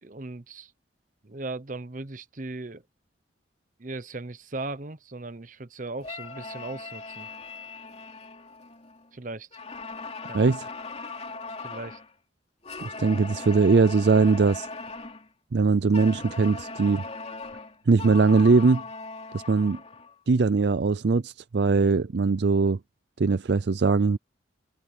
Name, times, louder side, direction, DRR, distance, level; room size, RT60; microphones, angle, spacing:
voice 1, 0.0-0.7 1.2-2.8 3.8-7.3 9.1-9.5 10.3-10.5 11.6-12.0 21.8-21.9, right 2 dB, 45° right, 0.9 m, -38 dB
sound 1, 6.0-9.1 9.5-12.1 12.6-15.3 15.9-20.1, left 3 dB, 35° left, 2.9 m, -39 dB
voice 2, 10.3-10.7 12.8-14.7 15.5-17.0 17.9-18.8 19.3-19.8 20.3-22.8 23.2-24.2, right 4 dB, 60° right, 0.5 m, -21 dB
open air
head